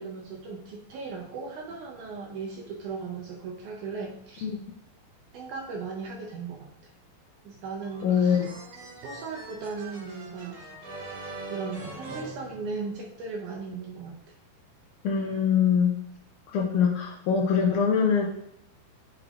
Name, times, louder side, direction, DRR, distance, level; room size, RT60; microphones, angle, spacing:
voice 1, 0.0-4.5 5.3-6.9 7.4-8.4 9.0-10.7 11.5-14.2, right 4 dB, 75° right, 0 dB, 1.9 m, -37 dB
sound 1, 7.8-13.2, right 2 dB, 55° right, 1.9 m, -42 dB
voice 2, 8.0-8.5 15.0-16.0 16.5-18.3, left 7 dB, 80° left, 1 dB, 1.8 m, -23 dB
9.5 x 4.9 x 2.4 m, 0.76 s
omnidirectional pair, 4.1 m